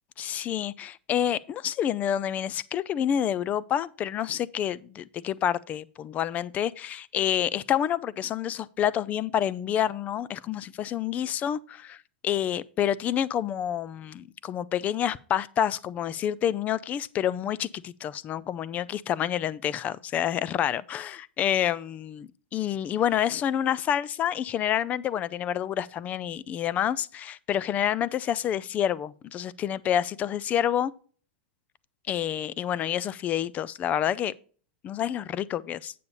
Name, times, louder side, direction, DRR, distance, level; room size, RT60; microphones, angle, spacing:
voice 1, 0.2-30.9 32.1-34.3 34.8-35.9, left 10 dB, 25° left, 0.4 m, -28 dB
8.4 x 6.9 x 4.1 m
hypercardioid pair, 130°, 6 cm